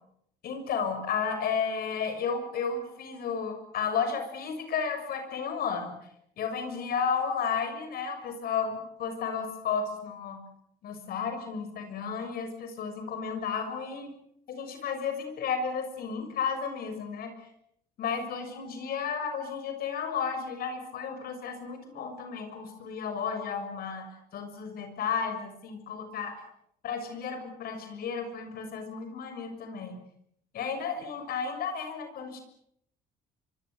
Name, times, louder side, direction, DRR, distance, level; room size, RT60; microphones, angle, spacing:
voice 1, 0.4-6.0 6.4-10.4 10.8-14.1 14.6-17.3 18.0-26.4 26.8-30.0 30.5-32.4, left 6 dB, 65° left, 7 dB, 6.6 m, -33 dB
24.5 x 24.0 x 8.2 m, 0.73 s
cardioid pair, 110°, 17 cm